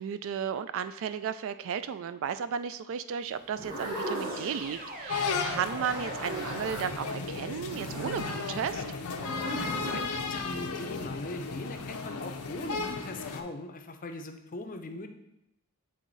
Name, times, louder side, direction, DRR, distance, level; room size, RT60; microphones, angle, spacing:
voice 1, 0.0-8.8, right 7 dB, 60° right, 13 dB, 0.3 m, -34 dB
sound 1, 3.4-5.1 5.7-7.2 7.7-10.0, equal, 85° right, 1.7 m, -38 dB
sound 2, 4.1-9.1, right 1 dB, 40° right, 0.8 m, -44 dB
sound 3, 5.1-13.4, left 4 dB, 85° left, 0.6 m, -35 dB
voice 2, 9.5-15.1, left 2 dB, 40° left, 6 dB, 0.5 m, -40 dB
7.6 x 3.6 x 4.0 m, 0.85 s
head